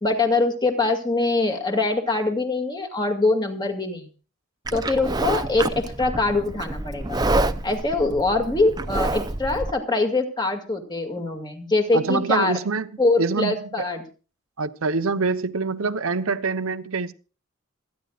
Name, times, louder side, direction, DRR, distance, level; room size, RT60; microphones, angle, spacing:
voice 1, 0.0-4.1 4.7-7.2 7.6-12.6 13.0-14.0, left 2 dB, 20° left, 2.2 m, -23 dB
Livestock farm animals working animals, 4.7-9.7, right 2 dB, 20° right, 0.6 m, -27 dB
voice 2, 11.9-12.9 13.2-13.9 14.6-17.1, right 4 dB, 85° right, 0.9 m, -25 dB
27.0 x 10.5 x 2.4 m
head